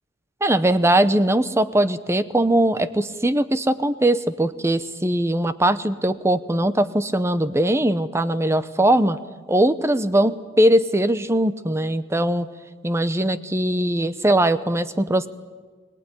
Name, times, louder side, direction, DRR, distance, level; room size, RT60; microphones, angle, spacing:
voice 1, 0.4-9.2 9.5-12.5 12.8-15.3, right 1 dB, 15° right, 13 dB, 0.8 m, -20 dB
23.5 x 18.5 x 9.9 m, 1.5 s
head